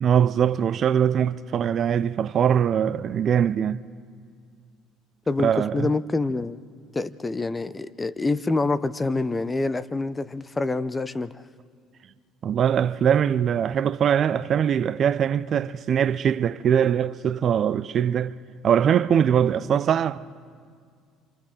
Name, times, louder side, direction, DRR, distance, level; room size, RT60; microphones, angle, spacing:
voice 1, 0.0-3.8 5.4-5.9 12.4-18.4 18.6-20.2, right 8 dB, 45° right, 0.4 m, -22 dB
voice 2, 5.3-6.6 6.9-11.4, left 3 dB, 20° left, 0.6 m, -26 dB
27.0 x 26.0 x 3.8 m
hypercardioid pair, 60°, 0 cm